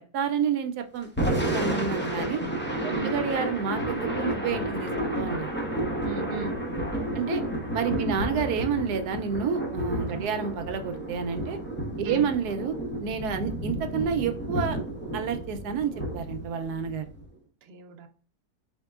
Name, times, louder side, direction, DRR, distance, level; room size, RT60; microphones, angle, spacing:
voice 1, 0.1-2.4 2.8-5.5 7.1-7.4 7.7-11.6 12.0-14.8 15.1-17.1, right 6 dB, 80° right, 8 dB, 1.1 m, -29 dB
Thunder / Rain, 1.0-17.3, right 1 dB, 15° left, 0.4 m, -31 dB
voice 2, 6.0-6.6 8.0-8.1 10.1-10.3 12.1-12.3 17.6-18.1, right 6 dB, 55° right, 4 dB, 0.7 m, -36 dB
4.4 x 3.5 x 2.3 m, 0.42 s
omnidirectional pair, 1.7 m